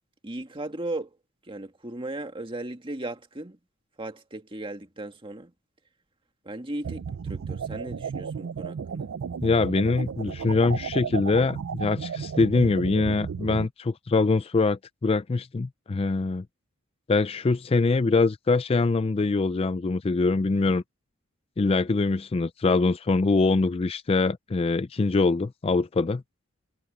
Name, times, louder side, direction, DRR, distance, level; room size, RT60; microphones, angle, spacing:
voice 1, 0.2-1.2 1.4-3.6 4.0-5.5 6.4-9.2, right 2 dB, 25° right, 1.9 m, -36 dB
sound 1, 6.8-13.7, right 6 dB, 65° right, 0.4 m, -33 dB
voice 2, 9.4-16.4 17.1-20.8 21.6-26.2, left 3 dB, 25° left, 0.4 m, -23 dB
head